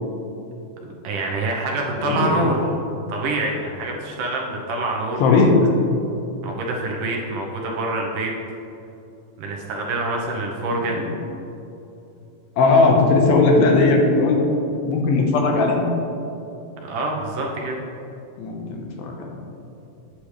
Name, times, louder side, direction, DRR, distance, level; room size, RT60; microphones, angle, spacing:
voice 1, 1.0-2.6 3.1-5.4 6.4-8.3 9.4-11.0 16.9-17.8, right 2 dB, 70° right, 0 dB, 2.2 m, -26 dB
voice 2, 2.0-2.4 5.2-5.5 10.9-11.1 12.6-14.4 14.9-15.9 18.4-19.1, left 3 dB, 90° left, 1 dB, 2.9 m, -17 dB
8.7 x 8.4 x 3.2 m, 2.8 s
omnidirectional pair, 4.2 m